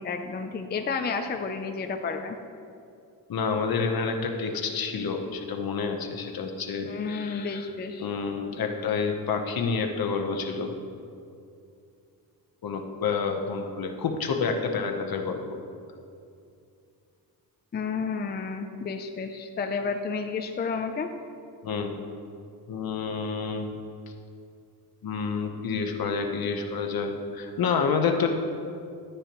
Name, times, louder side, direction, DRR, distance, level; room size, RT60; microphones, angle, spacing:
voice 1, 0.0-2.4 6.8-8.1 17.7-21.1, left 5 dB, 25° left, 6 dB, 0.5 m, -31 dB
voice 2, 3.3-7.7 8.0-10.7 12.6-15.6 21.6-21.9 22.7-23.7 25.0-28.3, left 5 dB, 60° left, 4 dB, 1.0 m, -29 dB
11.5 x 9.9 x 3.0 m, 2.4 s
wide cardioid pair, 125°, 40 cm